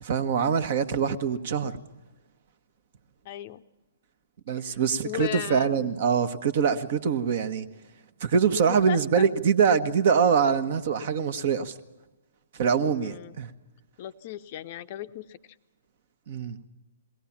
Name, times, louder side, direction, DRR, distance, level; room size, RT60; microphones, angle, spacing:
voice 1, 0.0-1.8 4.5-7.7 8.2-11.7 12.6-13.5 16.3-16.6, right 6 dB, 50° right, 1.1 m, -24 dB
voice 2, 3.2-3.6 4.5-5.9 8.7-9.2 13.0-13.4 14.0-15.4, left 12 dB, 40° left, 0.6 m, -37 dB
21.5 x 17.0 x 7.2 m
figure-of-eight pair, 125°, 0 cm